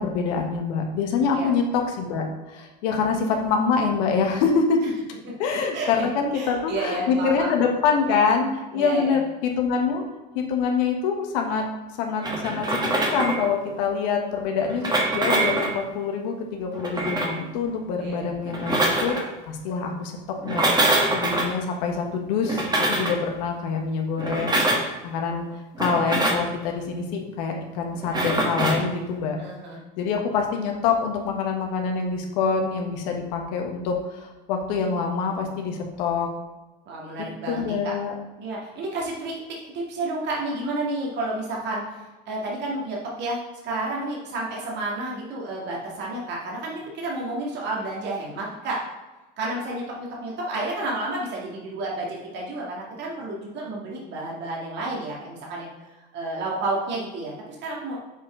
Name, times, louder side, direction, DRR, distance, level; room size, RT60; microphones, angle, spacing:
voice 1, 0.0-4.8 5.4-8.5 8.7-10.0 10.3-11.6 12.0-19.1 19.5-20.1 20.4-20.7 21.1-25.4 25.8-29.4 30.0-36.3 37.5-38.1, left 5 dB, 80° left, 3 dB, 1.2 m, -25 dB
voice 2, 5.7-6.1 6.3-7.5 8.7-9.2 18.0-18.3 29.4-29.8 36.9-37.9 38.4-43.4 43.6-48.8 49.4-57.3 57.6-58.0, right 2 dB, 55° right, -3 dB, 2.1 m, -31 dB
sound 1, 12.2-13.5 14.6-15.8 16.7-17.4 18.4-19.2 20.4-21.5 22.4-23.2 24.2-24.9 25.7-26.5 28.0-28.9, right 1 dB, 20° right, 1.5 m, -24 dB
6.9 x 4.5 x 3.7 m, 1.1 s
supercardioid pair, 95°, 21 cm